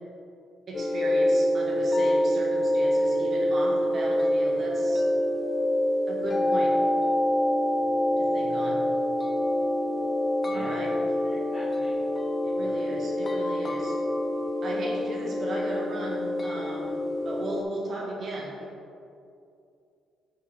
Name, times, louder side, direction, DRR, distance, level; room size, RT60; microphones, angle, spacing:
sound 1, 0.7-17.6, left 1 dB, 25° left, 0.5 m, -26 dB
voice 1, 0.7-5.0 6.1-6.7 7.8-7.9 8.2-8.8 10.5-10.9 12.4-14.0 14.6-18.5, right 1 dB, 50° right, -2 dB, 1.3 m, -36 dB
voice 2, 10.4-12.1, equal, 30° right, -8 dB, 1.2 m, -46 dB
6.7 x 4.4 x 3.2 m, 2.5 s
cardioid pair, 90°, 0 cm